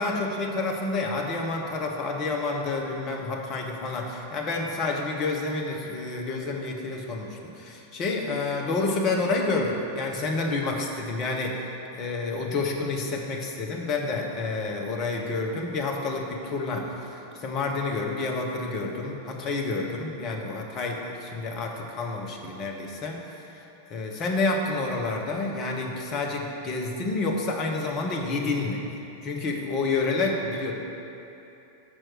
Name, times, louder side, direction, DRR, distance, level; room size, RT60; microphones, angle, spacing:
voice 1, 0.0-23.2 23.5-23.6 23.9-28.8 29.2-30.7, left 3 dB, 35° left, 1 dB, 0.9 m, -29 dB
6.2 x 4.5 x 6.3 m, 2.9 s
figure-of-eight pair, 90°, 0 cm